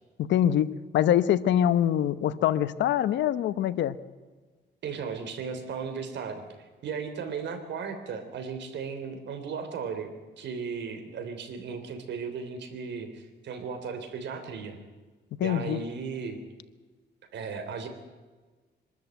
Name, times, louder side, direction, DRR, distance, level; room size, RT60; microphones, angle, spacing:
voice 1, 0.2-4.0 15.4-15.8, left 11 dB, 90° left, 14 dB, 0.9 m, -24 dB
voice 2, 4.8-14.8 15.4-16.4 17.3-17.9, right 5 dB, 80° right, 8 dB, 3.3 m, -36 dB
24.5 x 13.0 x 9.1 m, 1.3 s
cardioid pair, 110°, 18 cm